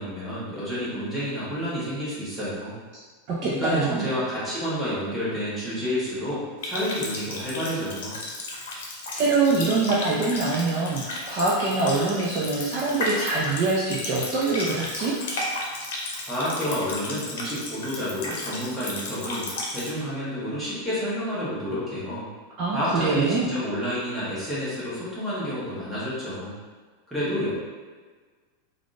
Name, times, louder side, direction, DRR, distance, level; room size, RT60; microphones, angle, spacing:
voice 1, 0.0-2.8 3.4-8.2 16.2-22.2 22.7-26.5 27.1-27.5, equal, 5° right, -10 dB, 0.9 m, -29 dB
voice 2, 3.3-4.1 9.1-15.2 22.6-23.5, right 3 dB, 35° right, -5 dB, 0.4 m, -24 dB
Water tap faucet, 6.6-19.9, left 2 dB, 80° left, 0.7 m, -34 dB
3.5 x 2.4 x 2.5 m, 1.4 s
supercardioid pair, 170°, 0 cm